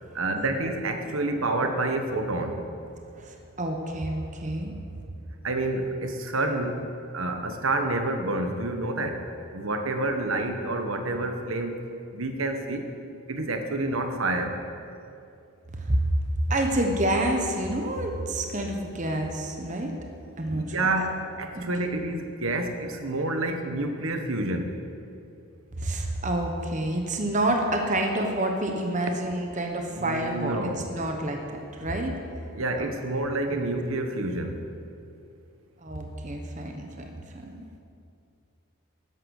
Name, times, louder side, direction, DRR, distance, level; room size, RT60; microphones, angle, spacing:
voice 1, 0.1-2.6 5.4-6.9 7.1-9.2 9.5-11.7 12.1-12.9 13.3-14.6 20.5-24.8 29.9-30.8 32.5-34.6, right 2 dB, 70° right, 5 dB, 1.2 m, -28 dB
voice 2, 3.1-4.7 15.7-16.1 16.5-19.9 20.4-20.9 21.5-21.6 25.7-32.1 32.8-32.9 33.5-33.6 35.8-37.0 37.3-37.6, right 1 dB, 35° right, 3 dB, 1.2 m, -28 dB
12.5 x 10.5 x 6.5 m, 2.5 s
head